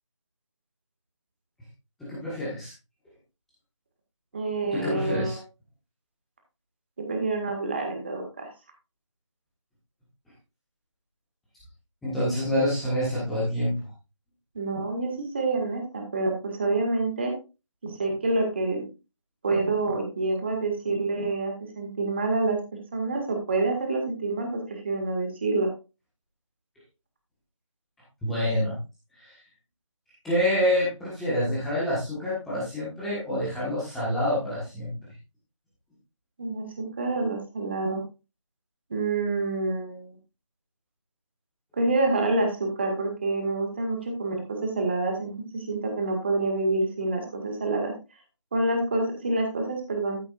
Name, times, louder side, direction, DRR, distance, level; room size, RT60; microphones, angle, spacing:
voice 1, 2.0-2.7 4.7-5.4 12.0-13.7 28.2-28.7 29.1-29.3 30.2-34.9, equal, ahead, -10 dB, 1.5 m, -27 dB
voice 2, 4.3-5.4 7.0-8.5 14.6-17.3 17.8-18.8 19.4-25.7 36.4-38.0 38.9-40.1 41.8-47.9 48.5-50.2, right 2 dB, 20° right, 2 dB, 1.9 m, -27 dB
13.5 x 7.7 x 2.5 m, 0.28 s
figure-of-eight pair, 170°, 16 cm